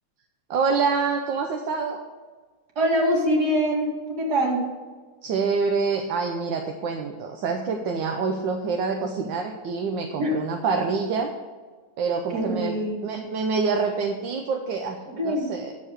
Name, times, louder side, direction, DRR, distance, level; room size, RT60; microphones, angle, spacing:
voice 1, 0.5-2.0 5.2-11.3 12.0-15.7, right 5 dB, 80° right, 4 dB, 1.5 m, -26 dB
voice 2, 2.8-4.6 10.2-10.3 12.3-13.2 15.1-15.5, equal, 55° right, -1 dB, 2.6 m, -24 dB
10.0 x 6.8 x 6.4 m, 1.4 s
omnidirectional pair, 2.0 m